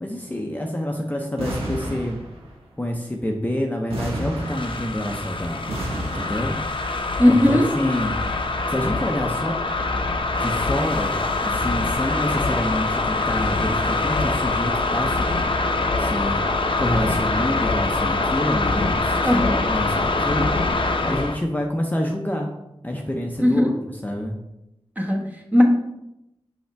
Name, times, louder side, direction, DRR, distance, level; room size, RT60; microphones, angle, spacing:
voice 1, 0.0-2.2 2.8-5.8 6.1-6.6 7.3-8.2 8.7-9.5 10.4-15.3 16.0-22.6 22.8-23.7 24.0-24.4, left 1 dB, 15° left, 1 dB, 0.7 m, -27 dB
sound 1, 1.4-2.6 3.9-5.2 5.7-6.8, right 1 dB, 90° right, 1.5 m, -31 dB
sound 2, 4.4-21.4, left 3 dB, 60° left, 0.7 m, -24 dB
voice 2, 7.2-7.7 19.2-19.6 23.4-23.7 25.0-25.6, left 1 dB, 15° right, 0 dB, 1.2 m, -18 dB
5.7 x 5.4 x 3.4 m, 0.88 s
wide cardioid pair, 80°, 10 cm